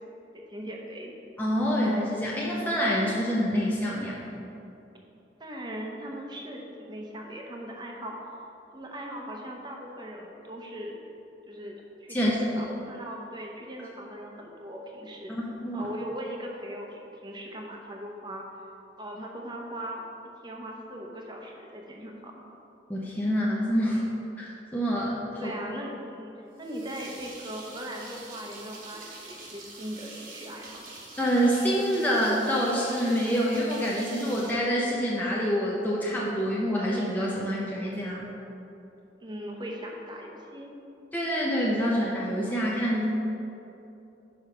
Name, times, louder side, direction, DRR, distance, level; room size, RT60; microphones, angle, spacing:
voice 1, 0.3-1.1 5.4-8.1 8.7-11.0 11.5-11.7 12.0-15.3 15.7-18.5 19.0-20.0 20.4-22.3 25.4-26.3 26.6-30.8 39.2-40.7, equal, 25° right, 0 dB, 0.8 m, -39 dB
voice 2, 1.4-4.2 12.1-12.4 15.3-15.9 22.9-24.1 24.4-25.4 31.2-38.3 41.1-43.0, equal, 10° left, -5 dB, 0.6 m, -26 dB
sound 1, 26.6-35.4, right 2 dB, 50° right, 1.3 m, -45 dB
5.6 x 4.9 x 5.7 m, 2.9 s
head